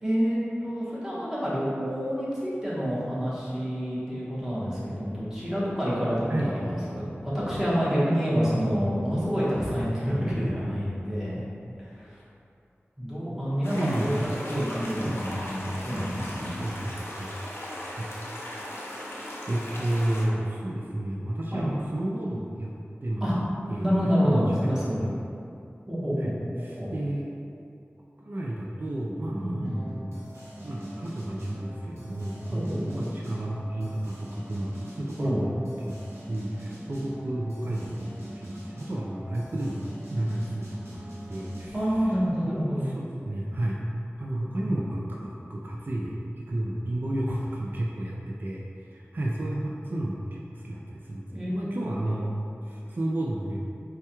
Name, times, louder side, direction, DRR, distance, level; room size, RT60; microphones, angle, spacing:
voice 1, 0.0-11.4 11.8-12.2 13.0-14.2 14.4-16.6 21.5-21.7 23.2-23.4 23.8-25.1 25.9-26.9 29.3-29.7 32.5-33.1 35.2-35.4 41.7-42.8 44.6-44.7 51.3-51.9, equal, 10° right, -9 dB, 1.2 m, -28 dB
sound 1, 13.6-20.3, left 1 dB, 60° left, 0.6 m, -38 dB
voice 2, 13.8-14.2 14.5-14.7 15.0-15.4 15.9-16.2 16.6-16.9 17.2-17.3 18.0-18.1 19.5-22.7 23.0-23.3 23.7-24.7 25.0-25.1 26.2-26.3 26.6-27.2 28.2-30.3 30.6-35.5 35.8-35.9 36.3-39.8 40.1-41.8 42.4-43.8 44.2-45.2 45.5-53.6, right 1 dB, 45° right, -3 dB, 0.3 m, -31 dB
sound 2, 29.7-42.6, equal, 85° right, 0.9 m, -42 dB
4.4 x 2.3 x 2.9 m, 2.5 s
wide cardioid pair, 40°, 5 cm